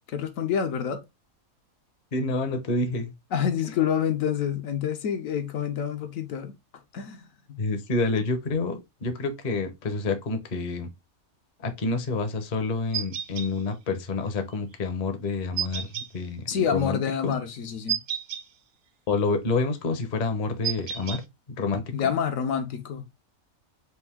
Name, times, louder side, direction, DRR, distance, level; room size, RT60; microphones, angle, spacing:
voice 1, 0.1-1.0 3.3-6.5 6.9-7.6 16.5-18.0 21.9-23.0, left 8 dB, 70° left, 1.1 m, -27 dB
voice 2, 2.1-3.1 7.6-10.9 11.6-17.3 19.1-21.2 21.6-22.1, left 3 dB, 40° left, 0.7 m, -28 dB
sound 1, 12.9-13.5 15.6-16.1 17.9-18.4 20.6-21.2, right 9 dB, 65° right, 0.9 m, -30 dB
4.3 x 2.6 x 3.4 m
omnidirectional pair, 1.5 m